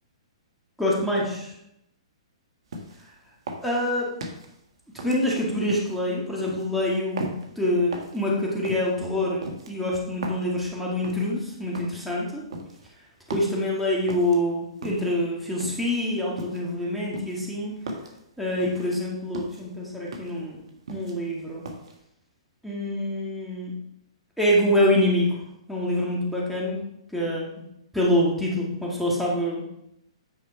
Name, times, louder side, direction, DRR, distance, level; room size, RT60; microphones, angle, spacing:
voice 1, 0.8-1.5 3.6-4.1 5.0-12.4 13.3-17.8 18.4-20.6 20.9-21.6 22.6-23.8 24.4-25.4 25.7-26.8 27.1-27.5 27.9-29.6, left 1 dB, ahead, -5 dB, 2.2 m, -25 dB
sound 1, 2.7-3.1 3.5-4.5 5.0-6.0 6.4-6.7 7.2-7.5 7.9-8.2 8.6-8.9 9.4-10.5 11.0-11.3 11.7-12.1 12.5-12.9 13.3-13.6 14.1-14.4 14.8-15.2 15.6-15.9 16.4-16.7 17.1-18.2 18.6-19.0 19.3-19.7 20.1-20.4 20.7-21.3 21.7-21.9, right 1 dB, 70° right, 1.6 m, -37 dB
9.4 x 5.0 x 4.5 m, 0.80 s
hypercardioid pair, 125°, 3 cm